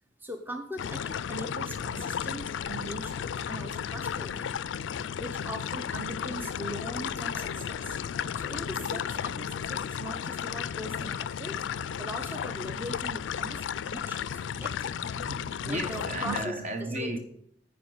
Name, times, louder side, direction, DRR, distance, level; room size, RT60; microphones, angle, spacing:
voice 1, 0.2-4.6 5.1-8.0 8.4-11.6 12.0-15.2 15.7-16.6 17.0-17.2, right 1 dB, 10° right, 0.7 m, -41 dB
sound 1, 0.8-16.5, left 8 dB, 70° left, 0.3 m, -34 dB
voice 2, 14.5-17.2, right 1 dB, 40° right, 1.1 m, -35 dB
9.6 x 5.1 x 7.9 m
head